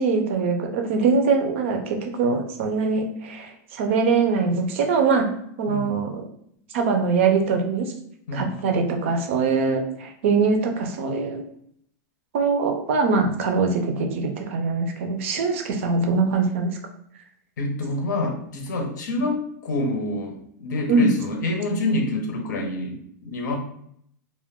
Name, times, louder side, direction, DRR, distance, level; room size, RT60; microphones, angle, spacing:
voice 1, 0.0-5.3 5.6-6.2 6.7-7.9 8.3-11.4 12.3-16.7 20.9-21.1, right 4 dB, 45° right, 4 dB, 0.4 m, -22 dB
voice 2, 5.7-6.0 8.3-8.6 17.6-23.6, left 2 dB, 85° left, 3 dB, 0.7 m, -27 dB
2.3 x 2.1 x 3.5 m, 0.68 s
supercardioid pair, 180°, 10 cm